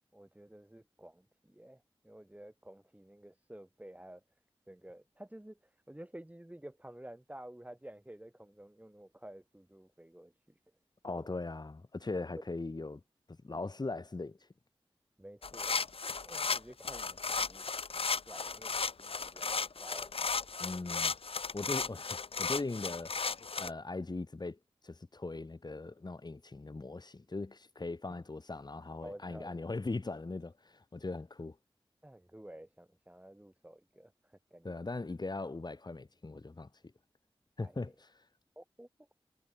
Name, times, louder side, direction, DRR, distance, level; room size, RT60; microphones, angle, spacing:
voice 1, 0.1-4.2 4.7-10.3 11.1-11.3 15.2-15.8 16.2-17.7 17.9-20.2 29.0-29.7 32.0-34.8 37.6-37.9 38.6-38.9, right 1 dB, 15° right, 3.9 m, -52 dB
voice 2, 11.0-13.0 13.3-14.5 20.6-21.1 21.5-23.1 23.6-31.6 34.6-36.7 37.6-38.2, left 3 dB, 45° left, 2.6 m, -40 dB
sound 1, 15.4-23.7, left 4 dB, 75° left, 1.6 m, -35 dB
cardioid pair, 50°, 10 cm